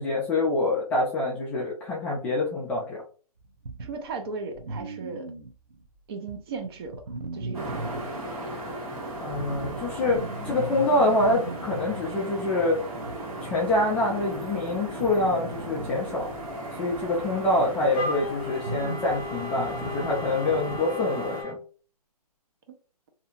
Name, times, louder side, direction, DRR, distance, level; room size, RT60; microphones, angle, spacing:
voice 1, 0.0-3.0 9.2-12.8 13.4-16.3 16.8-21.6, left 2 dB, 5° left, 0.3 m, -26 dB
sound 1, 3.4-5.9 6.3-20.8, right 3 dB, 85° right, 0.8 m, -39 dB
voice 2, 3.8-5.3 6.1-7.0 7.3-8.2 17.4-17.7, right 4 dB, 40° right, 0.6 m, -37 dB
sound 2, 7.5-21.4, right 1 dB, 60° right, 1.4 m, -37 dB
Wind instrument woodwind instrument, 17.9-21.6, left 3 dB, 35° left, 0.7 m, -36 dB
2.8 x 2.6 x 2.4 m
hypercardioid pair, 145°, 20 cm